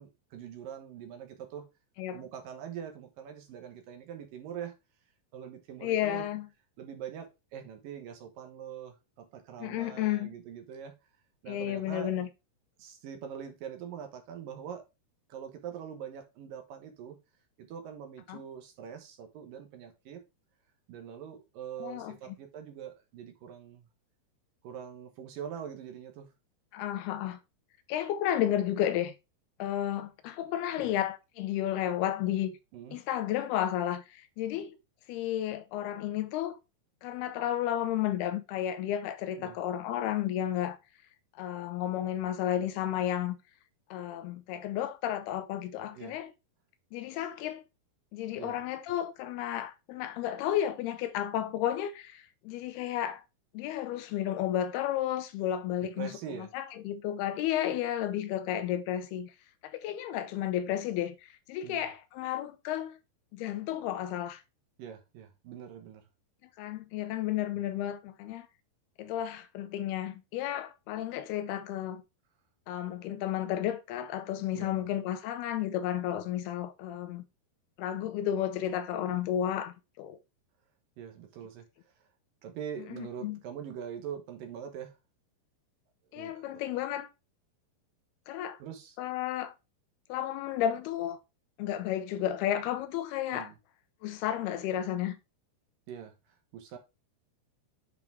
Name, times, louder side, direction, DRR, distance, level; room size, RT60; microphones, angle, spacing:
voice 1, 0.0-1.7 2.1-4.7 5.3-6.3 6.8-10.9 11.4-12.2 12.8-14.8 15.3-17.2 17.6-20.2 20.9-23.9 24.6-26.3 30.8-30.9 32.7-33.0 39.4-39.6 45.9-46.2 48.3-48.6 56.0-56.5 61.6-61.9 64.8-66.0 74.5-74.8 81.0-81.7 82.4-85.0 86.1-86.5 88.6-89.0 93.3-93.6 95.9-96.1 96.5-96.8, right 8 dB, 65° right, 2.6 m, -43 dB
voice 2, 5.8-6.5 9.6-10.3 11.5-12.3 18.3-18.4 21.8-22.2 26.7-27.4 27.9-29.1 29.6-32.5 32.9-34.8 35.1-36.6 37.0-40.8 41.4-43.4 43.9-46.3 46.9-47.6 48.1-53.2 53.5-59.3 59.6-63.0 63.3-64.4 66.6-68.5 69.0-72.0 72.7-77.2 77.8-80.2 82.8-83.4 86.1-87.1 88.3-88.6 89.0-89.5 90.1-91.2 91.6-93.5 94.0-95.2, left 11 dB, 80° left, 2.7 m, -32 dB
8.3 x 5.0 x 3.4 m
omnidirectional pair, 4.6 m